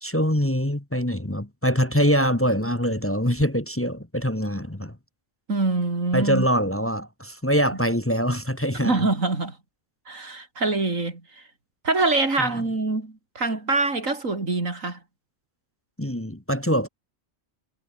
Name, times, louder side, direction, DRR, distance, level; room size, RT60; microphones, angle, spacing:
voice 1, 0.0-4.9 6.1-9.1 12.4-12.5 16.0-16.9, equal, 10° left, 1.5 m, -24 dB
voice 2, 5.5-6.5 8.8-9.6 10.1-11.4 11.8-15.0, right 3 dB, 90° right, 4.3 m, -25 dB
omnidirectional pair, 1.3 m